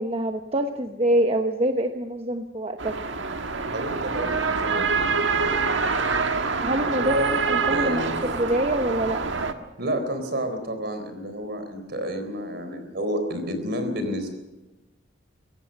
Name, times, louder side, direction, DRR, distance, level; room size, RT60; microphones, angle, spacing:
voice 1, 0.0-3.0 6.6-9.2, right 1 dB, 35° right, 6 dB, 1.0 m, -25 dB
sound 1, 2.8-9.5, right 4 dB, 85° right, 1.5 m, -25 dB
voice 2, 3.7-5.2 7.7-8.1 9.8-14.3, equal, 60° right, 8 dB, 4.0 m, -30 dB
24.0 x 16.5 x 6.6 m, 1.0 s
head